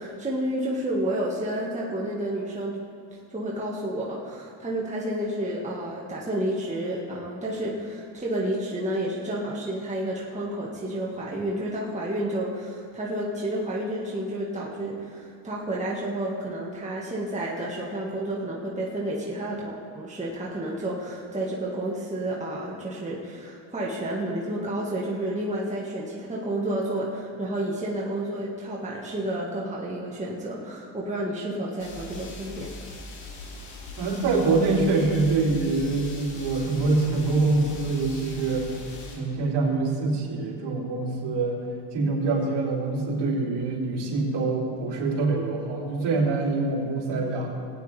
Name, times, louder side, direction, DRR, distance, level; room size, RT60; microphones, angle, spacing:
voice 1, 0.0-2.8 3.3-32.7, right 1 dB, 15° right, -4 dB, 1.8 m, -30 dB
sound 1, 31.8-39.2, left 2 dB, 75° left, 3.2 m, -41 dB
voice 2, 34.0-38.7 39.1-41.6 41.9-47.5, right 3 dB, 55° right, -3 dB, 3.2 m, -25 dB
19.0 x 9.3 x 3.5 m, 2.3 s
supercardioid pair, 105°, 48 cm